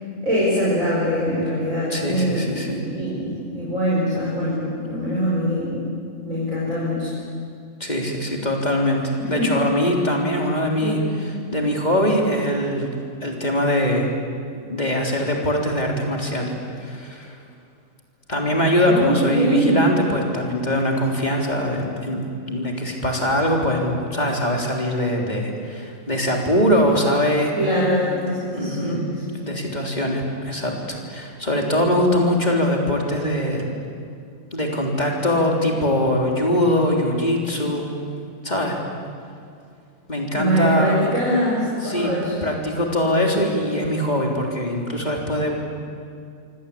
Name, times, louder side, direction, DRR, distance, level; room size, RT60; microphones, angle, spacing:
voice 1, 0.2-2.6 2.8-5.8 6.2-7.1 9.2-9.5 10.8-11.2 18.9-19.9 27.6-29.2 40.3-42.3, equal, 70° right, -6 dB, 6.3 m, -23 dB
voice 2, 1.9-2.8 7.8-9.0 9.3-11.0 11.5-12.9 13.2-14.1 14.6-16.5 16.8-17.4 18.3-22.2 22.5-27.5 28.5-29.0 29.4-33.7 34.5-37.9 38.4-38.8 40.1-41.0 41.8-42.1 42.4-45.6, left 1 dB, 30° left, 0 dB, 3.8 m, -22 dB
27.0 x 24.5 x 8.7 m, 2.3 s
omnidirectional pair, 1.4 m